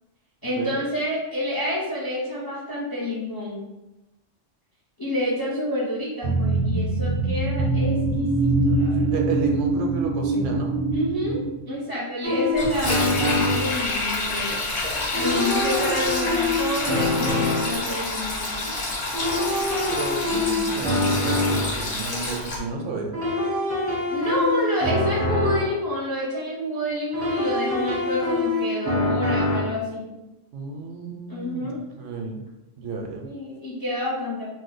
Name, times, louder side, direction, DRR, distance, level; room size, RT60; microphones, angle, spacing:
voice 1, 0.4-3.6 5.0-9.1 10.9-11.4 11.7-18.8 24.1-30.1 31.3-31.8 33.2-34.5, left 1 dB, 25° left, -6 dB, 0.5 m, -28 dB
sound 1, 6.2-11.7, right 2 dB, 55° right, 0.7 m, -23 dB
voice 2, 9.1-10.7 19.9-23.1 30.5-32.4 32.8-33.3, right 4 dB, 80° right, 1 dB, 0.9 m, -32 dB
sound 2, 12.2-13.8 15.1-17.8 19.1-21.8 23.1-25.8 27.1-29.8, left 2 dB, 15° right, 0.7 m, -25 dB
Sink (filling or washing), 12.5-22.6, left 2 dB, 80° left, 1.2 m, -28 dB
2.7 x 2.1 x 4.0 m, 0.99 s
omnidirectional pair, 1.3 m